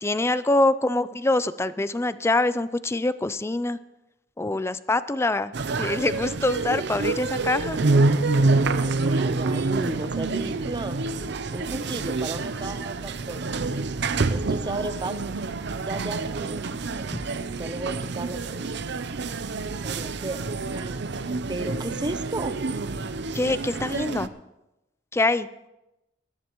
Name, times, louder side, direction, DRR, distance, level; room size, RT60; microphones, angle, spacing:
voice 1, 0.0-3.8 4.4-5.5 5.8-7.8 17.1-17.2 23.3-24.3 25.1-25.5, left 2 dB, 15° left, 15 dB, 0.4 m, -24 dB
sound 1, 5.5-24.3, right 3 dB, 65° right, 0.6 m, -27 dB
voice 2, 9.1-11.0 11.5-13.5 14.3-15.4 15.8-16.6 16.9-17.1 17.6-18.6 19.8-20.4 20.7-21.0 21.5-22.6, right 2 dB, 25° right, 9 dB, 0.7 m, -33 dB
20.5 x 13.5 x 3.1 m, 0.94 s
head